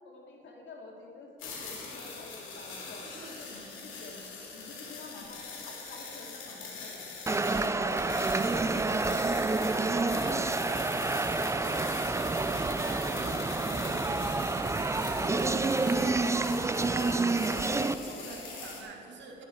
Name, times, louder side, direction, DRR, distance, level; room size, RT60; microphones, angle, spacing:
voice 1, 0.0-4.2 4.5-8.2 8.5-12.4 13.3-13.4 15.2-16.1, left 3 dB, 70° left, -1 dB, 2.5 m, -48 dB
sound 1, 1.4-18.8, left 4 dB, 90° left, 2.9 m, -43 dB
sound 2, 7.3-17.9, right 3 dB, 15° right, 0.5 m, -28 dB
voice 2, 12.8-15.2 16.8-19.4, right 4 dB, 70° right, 1 dB, 2.2 m, -46 dB
12.0 x 12.0 x 4.7 m, 2.9 s
cardioid pair, 90°, 20 cm